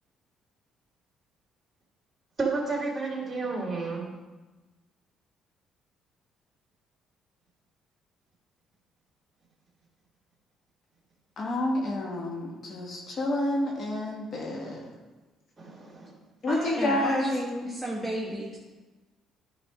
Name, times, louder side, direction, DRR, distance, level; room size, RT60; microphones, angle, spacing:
voice 1, 2.4-4.1 14.6-14.7 15.6-16.1, right 3 dB, 25° right, -2 dB, 2.5 m, -31 dB
voice 2, 11.4-14.8 16.4-17.3 17.6-17.7, left 1 dB, 50° left, 0 dB, 1.5 m, -29 dB
voice 3, 16.5-18.6, equal, 15° left, -3 dB, 1.3 m, -33 dB
10.0 x 4.0 x 5.0 m, 1.2 s
cardioid pair, 80°, 0 cm